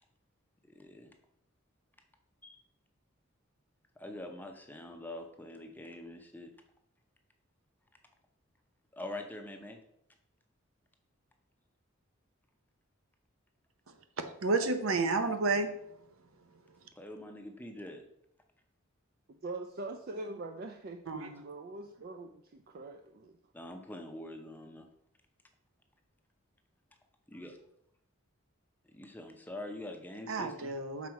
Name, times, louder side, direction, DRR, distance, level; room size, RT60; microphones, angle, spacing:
voice 1, 0.7-1.1 2.4-2.6 4.0-6.5 8.9-9.8 16.9-18.0 23.5-24.9 27.3-27.6 28.9-30.7, left 1 dB, 10° left, 0.6 m, -44 dB
voice 2, 14.2-15.7 21.1-21.4 30.3-31.1, right 3 dB, 80° right, 0.7 m, -31 dB
voice 3, 19.4-23.4, right 2 dB, 45° right, 0.4 m, -43 dB
6.1 x 4.1 x 4.7 m
head